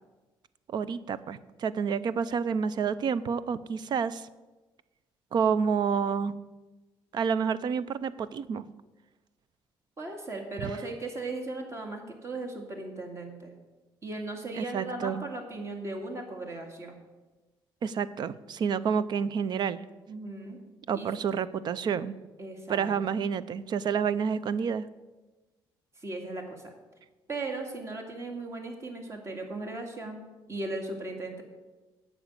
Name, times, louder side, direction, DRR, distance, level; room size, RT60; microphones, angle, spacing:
voice 1, 0.7-4.3 5.3-6.3 7.1-8.6 10.6-10.7 14.5-15.2 17.8-19.8 20.9-22.1 22.7-24.9, right 6 dB, 55° right, 16 dB, 0.6 m, -29 dB
voice 2, 10.0-13.5 14.0-17.0 20.1-20.6 20.9-21.3 22.4-22.9 26.0-26.7 27.3-30.2 30.5-31.4, right 2 dB, 30° right, 3 dB, 2.3 m, -37 dB
9.2 x 7.2 x 8.1 m, 1.2 s
cardioid pair, 110°, 9 cm